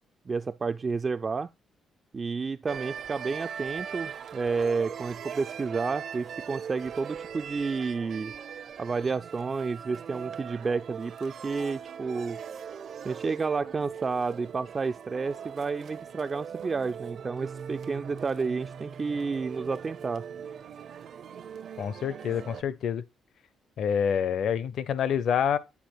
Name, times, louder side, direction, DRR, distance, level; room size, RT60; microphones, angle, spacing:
voice 1, 0.3-1.5 2.1-8.4 8.8-12.4 13.0-20.2, right 4 dB, 35° right, 0.3 m, -31 dB
sound 1, 2.7-22.6, right 7 dB, 60° right, 0.7 m, -40 dB
voice 2, 21.8-23.0 23.8-25.6, left 8 dB, 70° left, 0.7 m, -27 dB
8.3 x 2.9 x 6.1 m
cardioid pair, 90°, 0 cm